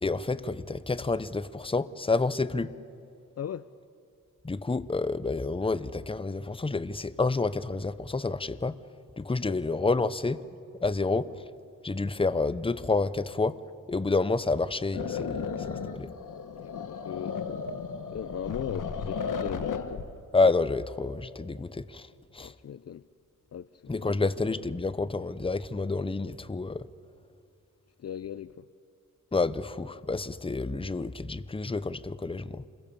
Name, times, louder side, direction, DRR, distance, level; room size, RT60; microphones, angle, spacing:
voice 1, 0.0-2.7 4.4-8.8 9.2-10.4 10.8-11.4 11.8-13.6 13.9-16.1 20.3-22.5 23.9-26.9 29.3-32.6, left 3 dB, 15° left, 0.8 m, -29 dB
voice 2, 3.4-3.7 9.4-9.6 16.6-17.6 18.1-20.0 22.4-23.1 23.5-24.1 28.0-28.6, left 9 dB, 50° left, 0.5 m, -38 dB
sound 1, 14.9-20.1, left 5 dB, 65° left, 1.4 m, -34 dB
27.0 x 22.0 x 7.1 m
cardioid pair, 90°, 33 cm